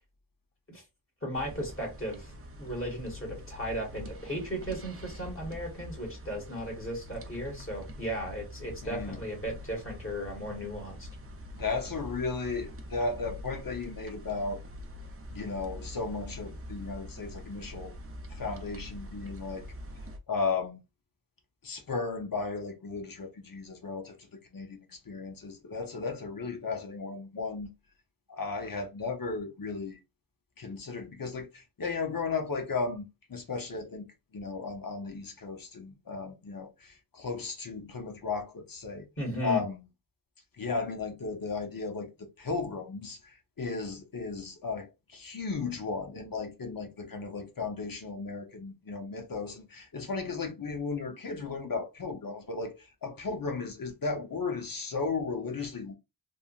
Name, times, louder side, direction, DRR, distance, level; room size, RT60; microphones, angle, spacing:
voice 1, 1.2-2.3 2.6-11.1 39.2-39.6, equal, 30° left, 1.6 m, -36 dB
sound 1, 1.3-20.2, equal, 30° right, 0.6 m, -44 dB
voice 2, 8.8-9.2 11.5-14.6 15.3-17.9 18.3-19.6 20.3-20.8 21.6-24.3 24.5-27.7 28.3-30.0 30.6-34.0 34.3-39.1 39.4-39.8 40.6-42.1 42.4-55.9, left 4 dB, 50° left, 0.8 m, -35 dB
3.5 x 2.2 x 2.4 m
wide cardioid pair, 80°, 44 cm